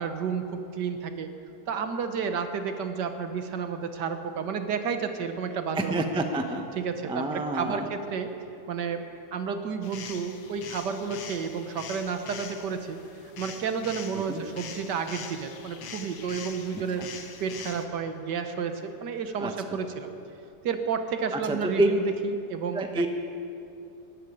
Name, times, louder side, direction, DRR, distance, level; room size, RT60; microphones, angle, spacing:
voice 1, 0.0-1.3 1.7-6.2 6.8-8.3 8.7-9.0 9.3-13.0 13.4-17.0 17.4-20.1 20.6-23.1, right 6 dB, 65° right, 7 dB, 1.5 m, -31 dB
voice 2, 5.7-6.6 7.1-7.9 14.1-14.4 16.7-17.1 19.4-19.8 21.3-21.9 22.7-23.1, right 2 dB, 5° right, 5 dB, 0.3 m, -28 dB
sound 1, 9.8-17.9, left 6 dB, 80° left, 1.8 m, -43 dB
13.0 x 11.5 x 8.9 m, 2.6 s
omnidirectional pair, 2.1 m